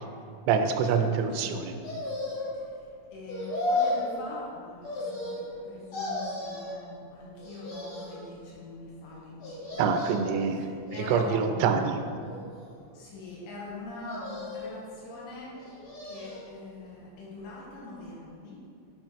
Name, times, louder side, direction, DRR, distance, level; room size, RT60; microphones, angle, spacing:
voice 1, 0.5-1.8 9.8-10.7 11.1-12.0, right 6 dB, 85° right, 6 dB, 2.9 m, -25 dB
sound 1, 1.8-2.6 3.3-4.1 4.8-5.6 5.9-6.8 7.4-8.2 9.4-10.3 10.9-11.6 12.2-13.0 14.0-14.8 15.5-16.5 16.9-17.0, left 2 dB, 55° left, 1.9 m, -34 dB
voice 2, 2.5-10.2 10.6-11.6 12.9-18.6, left 2 dB, 80° left, -5 dB, 3.5 m, -43 dB
8.8 x 5.0 x 3.1 m, 2.3 s
omnidirectional pair, 5.4 m